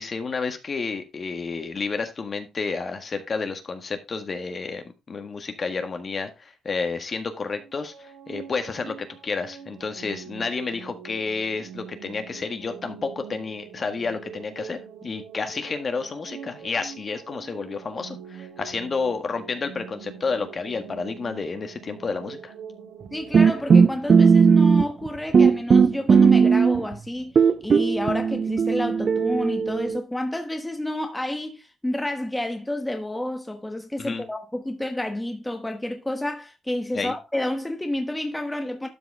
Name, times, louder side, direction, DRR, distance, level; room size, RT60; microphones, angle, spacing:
voice 1, 0.0-22.5 34.0-34.2 36.9-37.1, left 4 dB, 40° left, 1.6 m, -30 dB
sound 1, 7.6-23.8, right 7 dB, 80° right, 2.3 m, -43 dB
voice 2, 23.1-38.9, left 1 dB, 10° left, 1.1 m, -30 dB
sound 2, 23.3-25.1 25.3-26.9 27.4-30.0, right 5 dB, 45° right, 0.5 m, -17 dB
12.0 x 4.8 x 3.6 m
cardioid pair, 95°, 0 cm